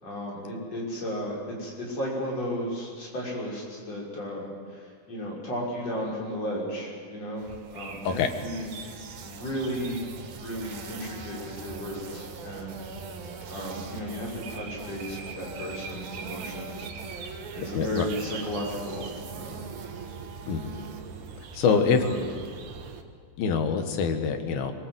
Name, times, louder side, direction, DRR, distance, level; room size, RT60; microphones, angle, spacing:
voice 1, 0.0-7.5 7.7-8.7 9.2-12.8 13.5-16.9 17.5-19.6 21.6-22.2, equal, 45° left, -4 dB, 7.2 m, -34 dB
sound 1, 7.4-21.0, right 4 dB, 85° right, 4.1 m, -44 dB
sound 2, 7.5-23.0, right 5 dB, 65° right, 2.9 m, -42 dB
voice 2, 17.8-18.1 20.5-20.8 21.4-22.0 23.4-24.7, left 6 dB, 85° left, 7 dB, 3.5 m, -25 dB
25.5 x 22.5 x 8.2 m, 2.1 s
omnidirectional pair, 4.1 m